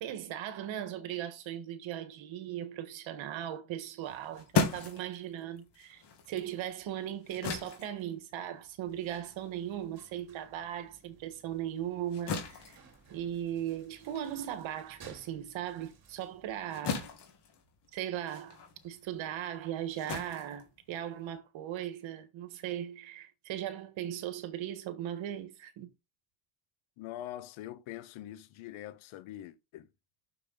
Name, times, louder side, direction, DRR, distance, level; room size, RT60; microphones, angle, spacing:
voice 1, 0.0-12.8 13.1-17.1 17.9-25.9, right 11 dB, 75° right, 1.6 m, -38 dB
sound 1, 4.0-10.8 11.2-21.4, left 5 dB, 60° left, 2.6 m, -39 dB
sound 2, 8.8-16.7, right 5 dB, 50° right, 3.2 m, -59 dB
voice 2, 27.0-29.9, left 13 dB, 80° left, 0.9 m, -44 dB
6.8 x 6.6 x 3.9 m
cardioid pair, 115°, 47 cm